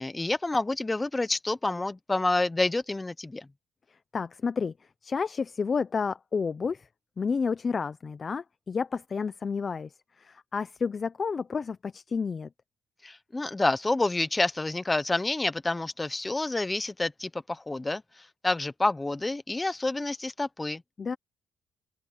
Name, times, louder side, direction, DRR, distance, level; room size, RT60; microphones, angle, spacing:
voice 1, 0.0-3.5 13.0-20.8, left 2 dB, 15° left, 1.0 m, -28 dB
voice 2, 4.1-4.7 5.0-6.9 7.2-9.9 10.2-12.5 21.0-21.2, left 5 dB, 40° left, 0.7 m, -30 dB
open air
cardioid pair, 90°, 0 cm